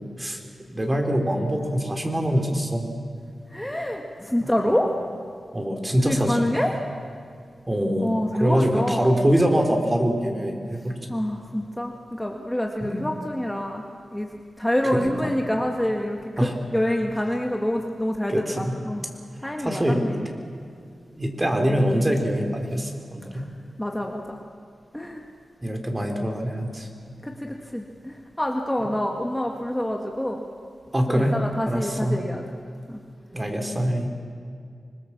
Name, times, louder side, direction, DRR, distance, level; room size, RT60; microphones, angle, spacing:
voice 1, 0.7-2.9 4.6-4.8 5.5-6.5 7.7-10.9 12.8-13.1 14.9-15.3 16.4-16.5 18.3-18.8 19.6-20.1 21.2-23.5 25.6-26.9 30.9-31.4 31.7-32.2 33.3-34.1, equal, 25° right, 3 dB, 3.8 m, -24 dB
voice 2, 3.5-4.9 6.0-6.7 8.0-9.2 11.1-19.0 19.4-20.3 23.3-23.5 23.8-24.4 24.9-25.2 27.2-30.4 31.1-32.4 32.9-33.0, equal, 10° left, 1 dB, 1.9 m, -27 dB
25.5 x 20.5 x 7.4 m, 2.3 s
cardioid pair, 60°, 0 cm